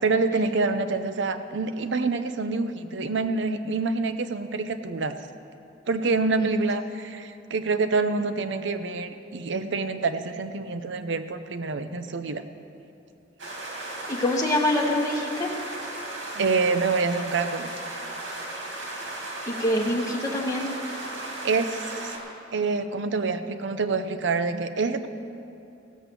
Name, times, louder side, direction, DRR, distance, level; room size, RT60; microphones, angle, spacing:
voice 1, 0.0-5.1 5.9-12.4 16.4-17.7 21.2-22.1 22.5-25.1, right 4 dB, 65° right, 10 dB, 0.7 m, -26 dB
sound 1, 13.4-22.2, right 2 dB, 85° right, 2.5 m, -36 dB
voice 2, 14.1-15.6 19.4-20.7, left 1 dB, 20° left, -2 dB, 1.0 m, -25 dB
16.5 x 7.5 x 6.8 m, 2.7 s
head